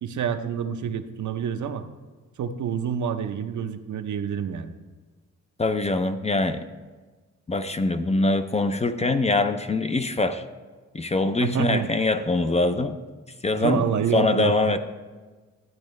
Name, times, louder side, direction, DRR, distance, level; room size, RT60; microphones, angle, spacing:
voice 1, 0.0-1.8 2.4-4.7 11.4-11.9 13.5-14.8, right 7 dB, 70° right, 8 dB, 0.7 m, -27 dB
voice 2, 5.6-6.6 7.5-10.4 10.9-13.0 13.4-13.8 14.1-14.8, left 2 dB, 20° left, 9 dB, 0.4 m, -23 dB
12.0 x 8.0 x 3.1 m, 1.3 s
cardioid pair, 95°, 30 cm